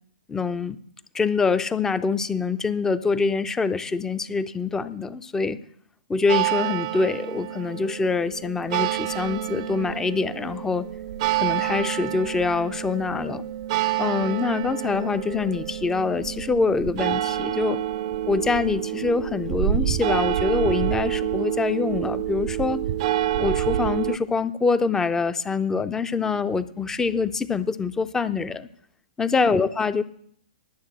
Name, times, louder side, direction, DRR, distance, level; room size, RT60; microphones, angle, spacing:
voice 1, 0.3-0.8 1.1-5.6 6.1-10.9 11.4-13.4 14.0-17.8 18.3-22.8 23.4-28.7 29.2-30.0, left 4 dB, 10° left, 13 dB, 0.6 m, -25 dB
sound 1, 6.3-24.2, right 12 dB, 45° right, 0.5 m, -27 dB
11.0 x 7.2 x 7.7 m, 0.65 s
hypercardioid pair, 120°, 4 cm